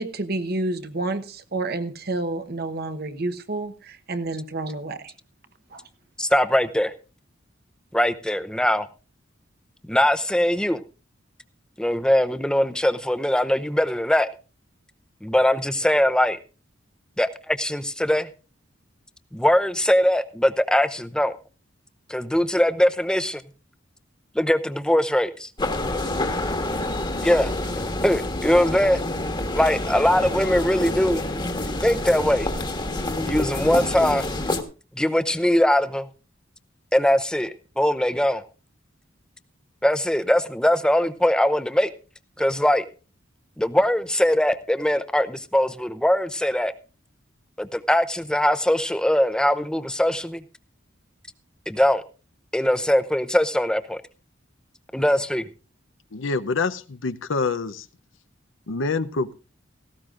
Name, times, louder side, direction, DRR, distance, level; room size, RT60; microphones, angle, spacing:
voice 1, 0.0-5.1 5.7-5.9, right 2 dB, 55° right, 10 dB, 1.1 m, -29 dB
voice 2, 6.2-6.9 7.9-8.9 9.9-10.8 11.8-14.3 15.2-16.4 17.2-18.3 19.3-21.3 22.1-23.4 24.3-25.5 27.2-27.5 28.0-29.0 29.5-31.2 31.8-32.5 33.2-34.3 35.0-36.1 36.9-38.4 39.8-41.9 42.4-42.8 43.6-46.7 47.6-50.4 51.7-52.0 52.5-54.0 54.9-55.5, left 1 dB, 5° left, 10 dB, 0.7 m, -21 dB
sound 1, 25.6-34.6, left 2 dB, 25° left, 1.4 m, -27 dB
voice 3, 56.1-57.9 58.7-59.3, left 4 dB, 80° left, 12 dB, 0.8 m, -26 dB
17.5 x 15.5 x 2.5 m, 0.33 s
head